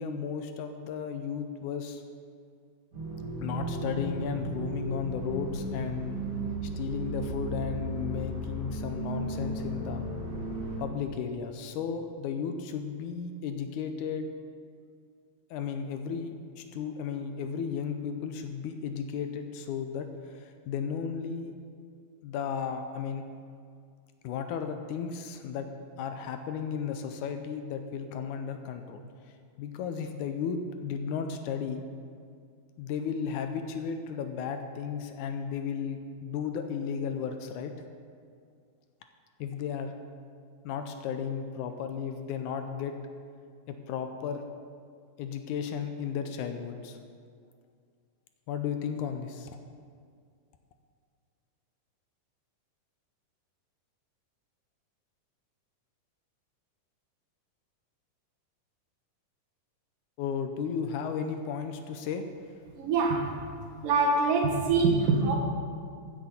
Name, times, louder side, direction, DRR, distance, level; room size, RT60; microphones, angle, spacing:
voice 1, 0.0-2.0 3.4-6.2 6.8-10.1 10.8-14.3 15.5-21.5 22.2-23.2 24.2-25.7 26.0-29.0 29.6-31.8 32.8-37.7 39.4-39.9 40.6-43.0 43.7-44.4 45.2-47.0 48.5-49.5 60.2-62.2, left 7 dB, 80° left, 7 dB, 2.0 m, -34 dB
sound 1, 2.9-10.8, right 1 dB, 60° right, 4.8 m, -35 dB
voice 2, 62.7-63.4 63.8-65.4, right 4 dB, 80° right, 0 dB, 3.1 m, -24 dB
15.5 x 8.3 x 4.3 m, 2.2 s
omnidirectional pair, 3.8 m